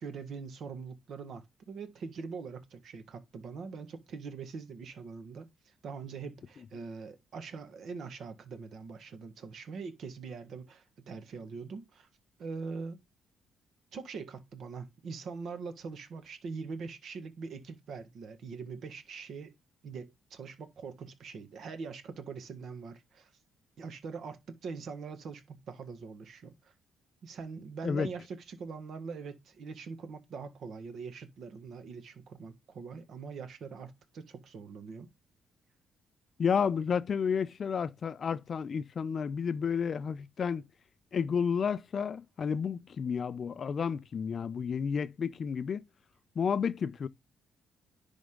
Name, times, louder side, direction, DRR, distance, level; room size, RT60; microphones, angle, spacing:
voice 1, 0.0-12.1 12.4-13.0 13.9-19.5 19.8-23.3 23.8-26.7 27.2-35.1, right 5 dB, 65° right, 1.6 m, -43 dB
voice 2, 36.4-40.6 41.1-45.8 46.4-47.1, left 6 dB, 50° left, 0.5 m, -31 dB
10.5 x 3.5 x 3.7 m
cardioid pair, 90°, 0 cm